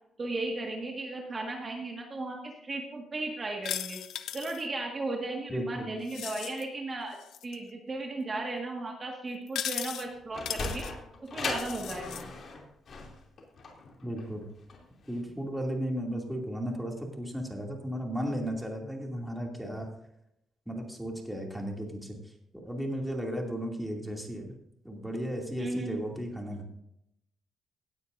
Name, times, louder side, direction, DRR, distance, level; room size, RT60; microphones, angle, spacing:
voice 1, 0.2-4.0 4.3-7.2 7.4-10.9 11.2-12.3 25.6-26.0, right 2 dB, 35° right, 1 dB, 1.8 m, -35 dB
sound 1, 3.6-4.6 6.1-6.6 7.2-7.6 9.5-10.1 10.5-10.9 11.5-12.2, left 10 dB, 75° left, 0.7 m, -37 dB
voice 2, 5.5-5.9 14.0-14.5 15.1-19.9 20.7-24.5 24.8-26.7, equal, ahead, 0 dB, 2.6 m, -35 dB
Sliding door, 10.0-15.2, left 3 dB, 50° left, 2.9 m, -38 dB
17.5 x 9.5 x 2.6 m, 0.79 s
cardioid pair, 90°, 0 cm